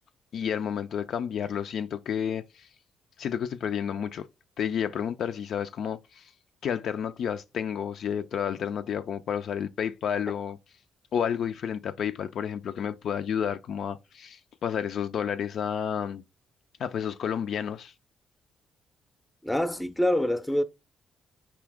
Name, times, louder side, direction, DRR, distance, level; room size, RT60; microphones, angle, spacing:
voice 1, 0.3-2.7 3.2-4.3 4.6-6.3 6.6-10.6 11.1-16.2 16.8-17.9, left 8 dB, 65° left, 0.3 m, -31 dB
voice 2, 19.4-20.6, left 1 dB, 10° left, 0.5 m, -25 dB
4.9 x 2.8 x 3.4 m
cardioid pair, 90°, 0 cm